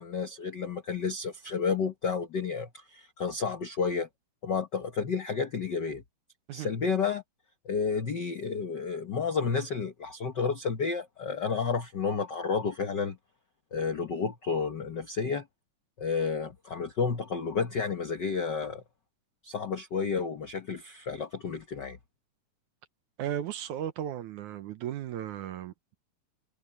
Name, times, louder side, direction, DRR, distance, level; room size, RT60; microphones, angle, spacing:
voice 1, 0.0-4.1 4.4-6.0 6.5-7.2 7.6-13.2 13.7-15.5 16.0-18.8 19.4-22.0, left 5 dB, 85° left, 0.9 m, -31 dB
voice 2, 23.2-26.0, right 10 dB, 70° right, 2.2 m, -35 dB
omnidirectional pair, 3.9 m